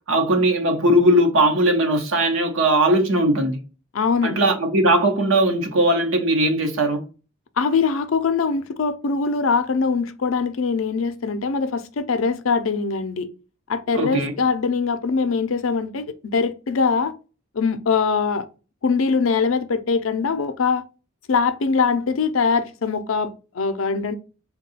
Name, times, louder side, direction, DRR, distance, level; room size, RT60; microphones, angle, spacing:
voice 1, 0.1-3.6 4.2-7.0 13.9-14.3, right 1 dB, 70° right, 0.9 m, -19 dB
voice 2, 3.9-4.4 7.6-13.3 13.7-17.1 17.5-18.5 18.8-20.8 21.3-24.1, left 5 dB, 75° left, 0.5 m, -22 dB
3.6 x 2.3 x 4.1 m
head